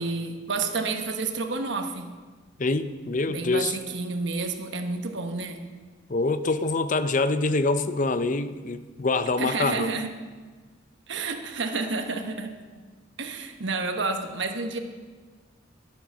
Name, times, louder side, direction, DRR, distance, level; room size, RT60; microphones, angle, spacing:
voice 1, 0.0-2.1 3.3-5.7 9.4-10.1 11.1-12.6 13.2-14.8, right 3 dB, 65° right, 5 dB, 1.2 m, -30 dB
voice 2, 2.6-3.8 6.1-9.9, left 3 dB, 40° left, 12 dB, 0.6 m, -25 dB
12.0 x 8.7 x 6.3 m, 1.4 s
head